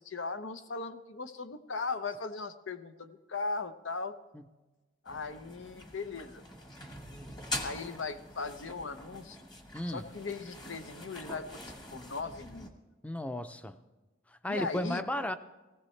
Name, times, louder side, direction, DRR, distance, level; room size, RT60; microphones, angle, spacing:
voice 1, 0.0-4.2 5.0-6.4 7.6-9.4 9.9-11.6 11.9-12.7 14.5-15.0, left 4 dB, 90° left, 0.8 m, -38 dB
sound 1, 5.1-12.7, left 1 dB, 20° left, 1.3 m, -44 dB
voice 2, 9.7-10.0 13.0-13.8 14.4-15.3, left 1 dB, 5° left, 0.5 m, -34 dB
19.0 x 15.5 x 3.3 m
head